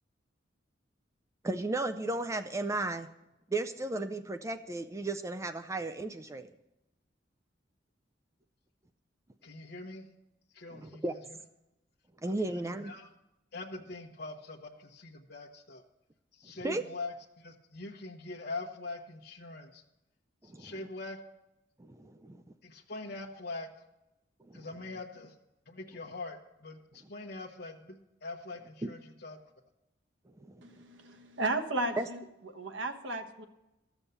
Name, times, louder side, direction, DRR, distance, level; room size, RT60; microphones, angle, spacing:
voice 1, 1.4-3.1 3.5-6.5 10.7-11.1 12.2-12.9 16.6-16.8 20.5-20.7 21.8-22.4 24.5-24.7 30.4-30.6 32.0-32.1, right 2 dB, 15° right, 9 dB, 0.4 m, -34 dB
voice 2, 9.4-10.1 10.5-11.4 12.2-13.1 13.5-15.8 16.3-19.8 20.4-21.2 22.6-23.8 24.5-25.4 25.7-29.4, left 2 dB, 60° left, 0 dB, 1.0 m, -43 dB
voice 3, 30.6-32.2 32.5-33.5, right 2 dB, 90° right, 6 dB, 1.3 m, -34 dB
13.5 x 7.1 x 6.8 m, 0.92 s
head